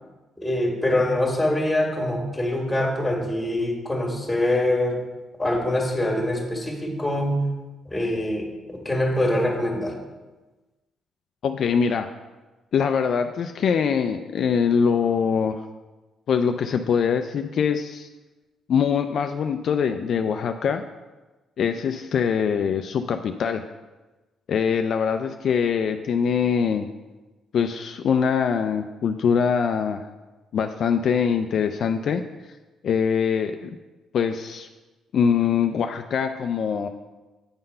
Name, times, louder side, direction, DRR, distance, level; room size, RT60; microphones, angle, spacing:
voice 1, 0.4-4.9 5.4-7.4 7.9-10.0, left 1 dB, 10° left, 0 dB, 1.8 m, -24 dB
voice 2, 11.4-12.1 12.7-15.7 16.3-18.1 18.7-20.8 21.6-23.6 24.5-26.9 27.5-30.0 30.5-32.2 32.8-33.8 34.1-34.7 35.1-36.9, left 6 dB, 60° left, 6 dB, 0.3 m, -23 dB
8.7 x 3.8 x 5.4 m, 1.2 s
cardioid pair, 90°, 0 cm